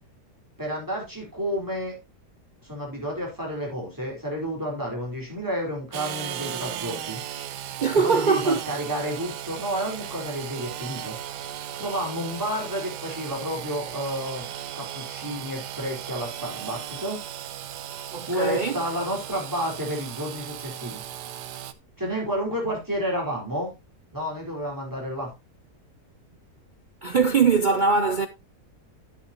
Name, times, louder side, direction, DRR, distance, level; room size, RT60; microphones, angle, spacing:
voice 1, 0.6-2.0 2.6-7.2 7.9-11.2 11.8-14.5 14.7-17.2 18.2-21.0 22.0-23.7 24.1-25.3, equal, 10° right, 4.5 m, -30 dB
Engine / Sawing, 5.9-21.7, right 11 dB, 85° right, 1.4 m, -36 dB
voice 2, 7.8-8.6 18.1-18.8 27.0-28.3, right 5 dB, 65° right, 0.4 m, -21 dB
11.5 x 8.5 x 2.9 m
omnidirectional pair, 1.7 m